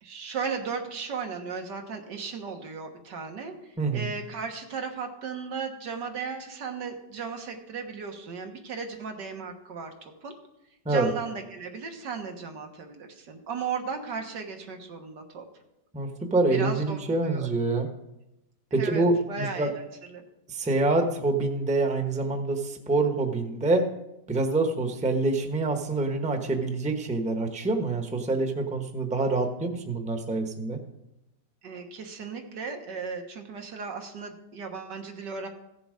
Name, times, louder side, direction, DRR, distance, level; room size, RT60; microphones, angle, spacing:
voice 1, 0.0-10.3 10.9-15.5 16.5-17.5 18.7-20.2 31.6-35.5, right 5 dB, 85° right, 4 dB, 2.0 m, -36 dB
voice 2, 3.8-4.1 10.8-11.1 15.9-17.9 18.7-19.7 20.5-23.9 24.3-30.8, right 2 dB, 5° right, 5 dB, 0.7 m, -26 dB
15.5 x 7.0 x 5.1 m, 0.89 s
omnidirectional pair, 1.8 m